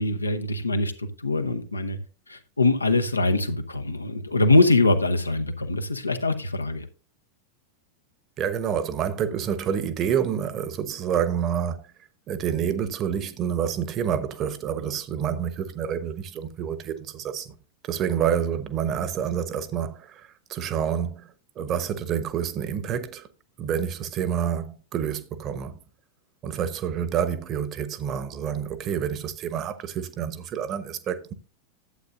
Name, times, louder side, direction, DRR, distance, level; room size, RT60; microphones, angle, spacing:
voice 1, 0.0-2.0 2.3-6.9, left 2 dB, 80° left, 0.8 m, -23 dB
voice 2, 8.4-11.9 12.3-17.6 17.9-21.3 21.6-23.3 23.6-25.8 26.4-31.3, right 8 dB, 35° right, 1.0 m, -28 dB
11.5 x 8.2 x 2.6 m
figure-of-eight pair, 90°, 0 cm